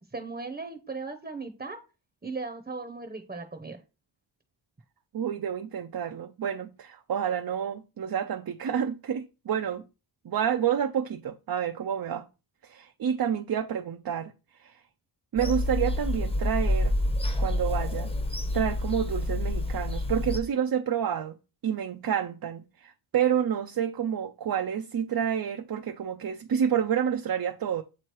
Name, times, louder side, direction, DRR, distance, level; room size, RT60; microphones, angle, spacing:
voice 1, 0.0-1.8 2.2-3.8, right 3 dB, 20° right, 0.8 m, -37 dB
voice 2, 5.1-9.8 10.2-12.3 12.6-14.3 14.6-14.8 15.3-16.9 17.4-18.1 18.5-21.4 21.6-27.8, right 8 dB, 50° right, 0.5 m, -29 dB
Bird vocalization bird call bird song / Telephone, 15.4-20.4, left 1 dB, 10° left, 0.8 m, -28 dB
7.4 x 3.2 x 4.5 m
wide cardioid pair, 95°, 49 cm